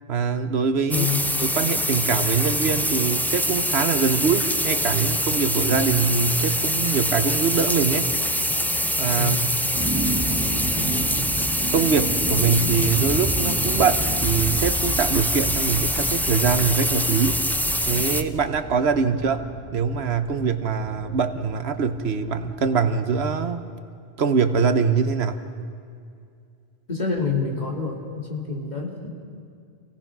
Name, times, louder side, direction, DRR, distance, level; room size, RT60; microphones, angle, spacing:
voice 1, 0.1-1.1 1.4-8.1 9.0-9.4 10.8-11.1 11.7-17.5 17.9-23.6 24.2-25.5, right 5 dB, 75° right, 10 dB, 1.2 m, -23 dB
voice 2, 0.9-1.2 9.2-9.5 19.0-19.2 26.9-29.1, left 5 dB, 40° left, -1 dB, 3.1 m, -27 dB
sound 1, 0.9-18.2, equal, ahead, 0.5 m, -24 dB
sound 2, 9.7-23.4, right 2 dB, 20° right, 1.5 m, -32 dB
27.0 x 17.5 x 6.1 m, 2.3 s
omnidirectional pair, 1.1 m